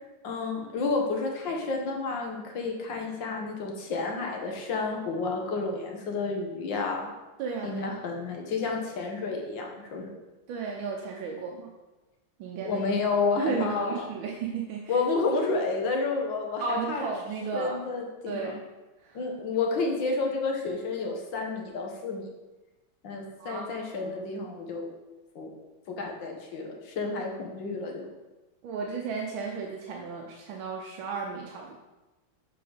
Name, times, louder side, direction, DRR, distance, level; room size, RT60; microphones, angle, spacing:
voice 1, 0.2-7.1 7.6-10.2 12.6-14.1 14.9-17.1 17.5-18.5 19.1-22.3 23.0-24.9 25.4-25.6 25.9-28.1, left 3 dB, 70° left, 1 dB, 1.8 m, -30 dB
voice 2, 7.4-8.0 10.5-11.7 12.4-12.8 13.4-15.0 16.6-17.8 18.3-18.6 19.0-19.2 23.4-23.6 24.0-24.1 28.6-31.8, right 5 dB, 85° right, 0 dB, 1.5 m, -34 dB
7.9 x 3.9 x 5.0 m, 1.1 s
omnidirectional pair, 2.1 m